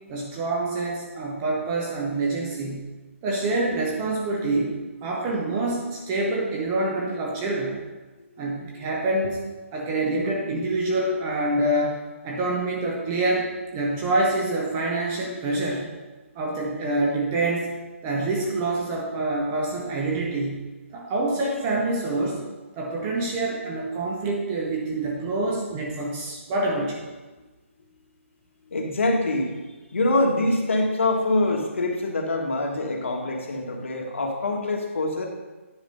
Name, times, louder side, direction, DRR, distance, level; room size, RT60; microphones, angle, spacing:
voice 1, 0.1-2.9 3.2-4.7 5.0-7.8 8.4-9.4 9.7-15.9 16.4-17.7 18.0-20.7 20.9-22.4 22.8-27.0, right 2 dB, 10° right, -2 dB, 0.4 m, -26 dB
voice 2, 28.7-29.5 29.9-35.3, left 2 dB, 65° left, 2 dB, 1.5 m, -24 dB
9.6 x 4.4 x 5.2 m, 1.2 s
hypercardioid pair, 180°, 7 cm